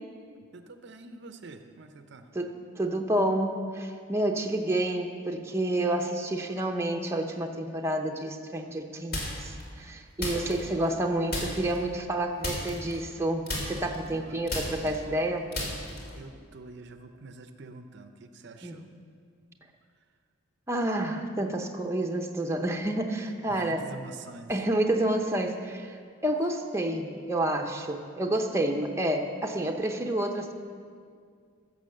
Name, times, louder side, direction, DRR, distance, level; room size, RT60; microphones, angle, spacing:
voice 1, 0.5-2.3 14.1-14.4 16.1-18.9 23.5-24.5, right 3 dB, 55° right, 8 dB, 0.6 m, -46 dB
voice 2, 2.3-15.5 18.6-18.8 20.7-23.9 24.5-30.5, right 1 dB, 15° right, 2 dB, 0.7 m, -29 dB
sound 1, 9.1-9.6 10.2-11.0 11.3-11.8 12.4-13.2 13.5-16.2, left 1 dB, 50° left, 3.0 m, -34 dB
15.5 x 6.9 x 6.5 m, 2.2 s
head